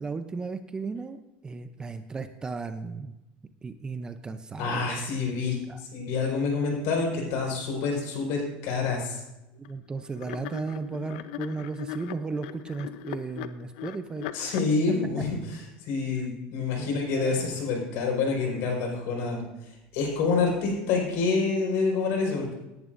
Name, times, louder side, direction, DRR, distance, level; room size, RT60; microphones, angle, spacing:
voice 1, 0.0-3.2 3.6-5.0 5.7-5.8 9.6-14.3 16.8-17.5, right 4 dB, 15° right, 9 dB, 0.6 m, -35 dB
voice 2, 4.6-9.2 14.3-19.4 19.9-22.5, left 4 dB, 65° left, 0 dB, 4.8 m, -27 dB
sound 1, 9.6-9.8 10.2-14.7, left 12 dB, 85° left, 0.7 m, -39 dB
18.5 x 11.0 x 2.6 m, 0.96 s
cardioid pair, 145°, 5 cm